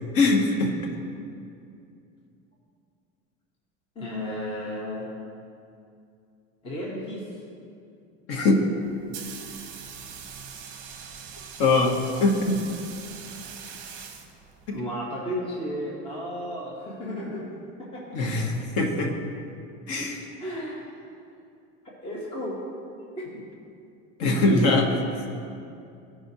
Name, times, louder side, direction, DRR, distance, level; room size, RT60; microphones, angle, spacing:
voice 1, 0.1-0.7 8.3-8.6 11.6-12.6 18.1-19.1 19.9-20.3 24.2-25.0, left 2 dB, 50° left, 1 dB, 1.0 m, -22 dB
voice 2, 3.9-5.1 6.6-7.3 14.7-17.5 17.8-18.2 20.4-20.9 21.8-22.6 23.2-23.4, equal, 20° left, -5 dB, 0.8 m, -33 dB
sound 1, 8.8-14.8, right 7 dB, 40° right, 0.7 m, -42 dB
14.0 x 5.0 x 2.7 m, 2.5 s
cardioid pair, 175°, 30 cm